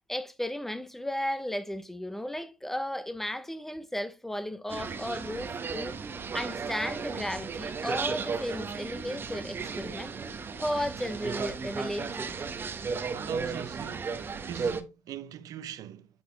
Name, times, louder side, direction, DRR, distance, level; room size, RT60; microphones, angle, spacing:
voice 1, 0.1-6.0 6.3-10.1 10.6-12.3, left 1 dB, 5° left, 0.7 m, -34 dB
sound 1, 4.7-14.8, right 5 dB, 30° right, 1.0 m, -35 dB
voice 2, 13.1-14.1 14.4-16.1, right 10 dB, 55° right, 0.7 m, -41 dB
8.6 x 4.2 x 3.3 m
supercardioid pair, 90°, 8 cm